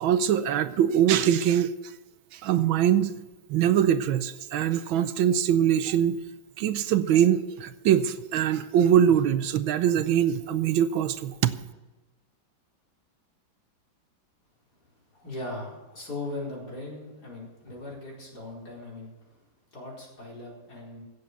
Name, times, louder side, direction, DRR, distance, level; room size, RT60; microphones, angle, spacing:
voice 1, 0.0-1.7 2.3-3.1 3.5-6.2 6.6-11.5, right 9 dB, 80° right, 13 dB, 1.5 m, -23 dB
voice 2, 15.1-21.0, left 2 dB, 50° left, -4 dB, 5.1 m, -39 dB
16.0 x 7.7 x 6.8 m, 1.1 s
omnidirectional pair, 2.2 m